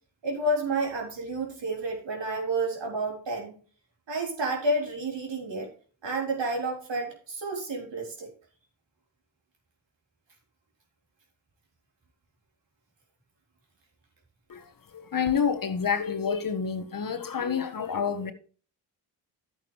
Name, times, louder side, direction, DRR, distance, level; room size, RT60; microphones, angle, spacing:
voice 1, 0.2-3.5 4.1-5.7 6.0-8.3, right 2 dB, 60° right, 4.2 m, -30 dB
voice 2, 15.1-18.3, left 6 dB, 45° left, 1.4 m, -28 dB
11.5 x 8.6 x 3.3 m
supercardioid pair, 45°, 48 cm